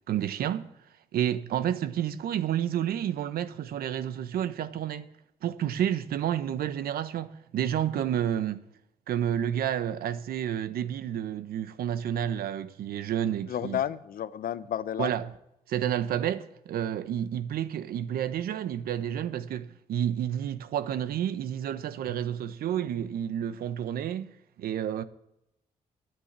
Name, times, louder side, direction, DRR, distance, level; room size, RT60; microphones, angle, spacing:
voice 1, 0.1-0.7 1.1-5.1 5.4-8.7 9.1-13.8 15.0-15.3 15.7-24.3 24.6-25.0, right 10 dB, 80° right, 0.9 m, -30 dB
voice 2, 13.5-15.1, left 10 dB, 70° left, 0.8 m, -31 dB
10.0 x 9.3 x 9.4 m
supercardioid pair, 55°, 15 cm